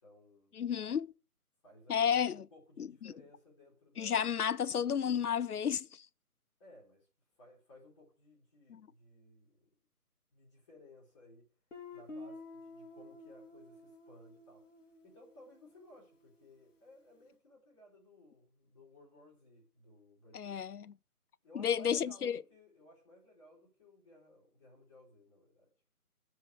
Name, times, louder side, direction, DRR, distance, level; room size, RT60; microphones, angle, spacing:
voice 1, 0.0-0.5 1.6-4.3 6.6-7.1 7.4-9.7 10.3-11.5 11.9-14.7 15.0-20.7 21.4-25.7, left 1 dB, 20° left, 2.8 m, -59 dB
voice 2, 0.5-1.1 1.9-2.5 2.8-3.1 4.0-6.1 8.7-8.8 20.3-20.9 21.5-22.4, left 8 dB, 75° left, 0.6 m, -32 dB
Guitar, 11.7-16.4, left 2 dB, 55° left, 2.1 m, -51 dB
10.0 x 4.8 x 7.9 m
figure-of-eight pair, 155°, 45 cm